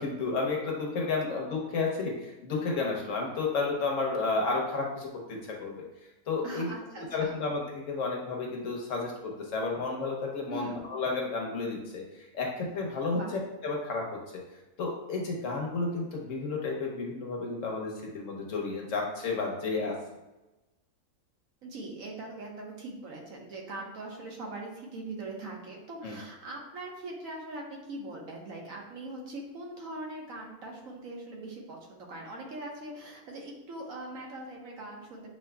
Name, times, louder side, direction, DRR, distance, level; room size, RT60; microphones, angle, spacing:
voice 1, 0.0-5.8 6.3-6.7 7.0-13.2 13.6-14.2 14.8-20.0 26.0-26.2, left 3 dB, 60° left, 0 dB, 1.1 m, -32 dB
voice 2, 6.4-7.4 10.5-10.8 13.1-13.3 21.6-35.3, right 2 dB, 65° right, -1 dB, 1.3 m, -41 dB
7.2 x 2.8 x 2.2 m, 1.0 s
omnidirectional pair, 1.6 m